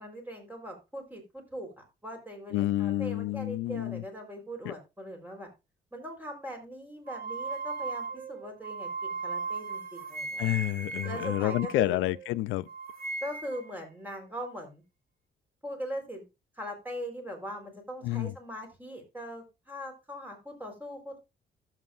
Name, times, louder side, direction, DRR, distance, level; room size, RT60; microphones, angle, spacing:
voice 1, 0.0-5.5 5.9-10.4 11.0-12.1 13.2-14.8 15.6-16.2 16.6-21.2, equal, 10° right, 4.0 m, -40 dB
voice 2, 2.5-4.0 4.6-4.7 10.4-12.7 18.0-18.3, left 16 dB, 90° left, 0.4 m, -29 dB
sound 1, 7.1-12.3 12.7-13.7, right 4 dB, 50° right, 1.8 m, -37 dB
14.5 x 7.4 x 2.5 m
cardioid pair, 90°, 20 cm